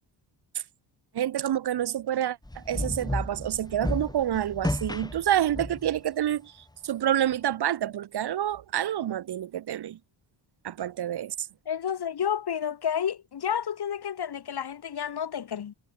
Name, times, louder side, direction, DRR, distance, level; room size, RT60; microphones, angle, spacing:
voice 1, 1.1-6.5 6.8-10.0 10.6-11.5, right 11 dB, 60° right, 1.0 m, -28 dB
sound 1, 2.4-6.0, left 1 dB, 10° left, 4.3 m, -32 dB
voice 2, 11.7-15.7, left 8 dB, 55° left, 2.9 m, -30 dB
cardioid pair, 95°, 45 cm